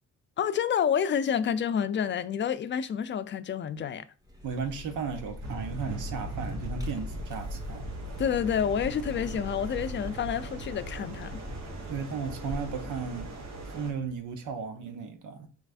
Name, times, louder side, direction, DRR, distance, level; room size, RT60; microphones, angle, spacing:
voice 1, 0.4-4.1 8.2-11.4, left 8 dB, 40° left, 0.5 m, -29 dB
Vehicle, 4.2-14.6, left 2 dB, 10° right, 1.2 m, -42 dB
voice 2, 4.4-7.9 11.9-13.3 13.7-15.5, right 5 dB, 85° right, 0.9 m, -35 dB
sound 1, 5.4-13.9, right 2 dB, 65° right, 1.2 m, -39 dB
5.1 x 3.2 x 2.5 m
cardioid pair, 90°, 30 cm